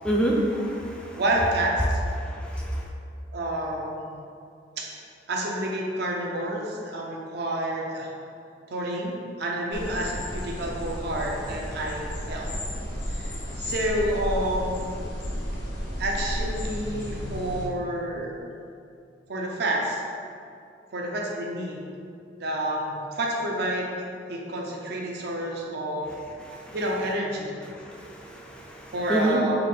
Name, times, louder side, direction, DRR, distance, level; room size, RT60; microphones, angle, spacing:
voice 1, 0.0-1.2 2.2-2.9 26.4-26.8 27.7-29.4, right 1 dB, 5° left, -3 dB, 0.3 m, -28 dB
voice 2, 1.1-2.0 2.5-2.6 3.3-4.2 4.8-5.0 5.3-8.1 8.7-12.5 13.1-14.8 16.0-18.3 19.3-20.0 20.9-21.8 22.4-24.0 24.3-26.1 26.7-27.5 28.9-29.6, right 1 dB, 60° right, -1 dB, 0.5 m, -29 dB
sound 1, 9.7-17.7, equal, 70° left, 0.8 m, -33 dB
3.4 x 2.4 x 3.7 m, 2.5 s
head